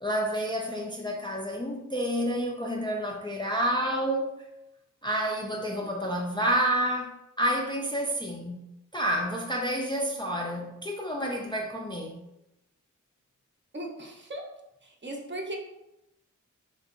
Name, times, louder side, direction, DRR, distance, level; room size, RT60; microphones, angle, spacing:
voice 1, 0.0-4.3 5.0-12.2, equal, 15° left, 0 dB, 0.3 m, -29 dB
voice 2, 13.7-14.5 14.8-15.6, right 1 dB, 35° right, 0 dB, 0.5 m, -38 dB
2.9 x 2.6 x 2.4 m, 0.89 s
wide cardioid pair, 60°, 31 cm